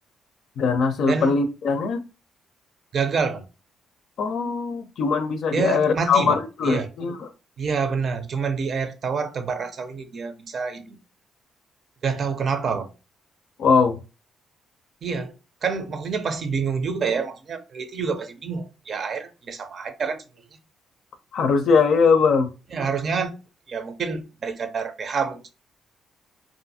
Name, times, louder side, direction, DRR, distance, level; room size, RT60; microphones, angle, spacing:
voice 1, 0.6-2.0 4.2-7.3 13.6-14.0 21.3-22.5, left 5 dB, 70° left, 0.5 m, -21 dB
voice 2, 2.9-3.4 5.5-6.4 6.6-6.9 7.6-11.0 12.0-12.9 15.0-15.3 15.6-20.2 22.7-23.4 23.7-25.5, right 5 dB, 50° right, 0.5 m, -27 dB
2.6 x 2.4 x 2.7 m
cardioid pair, 90°, 0 cm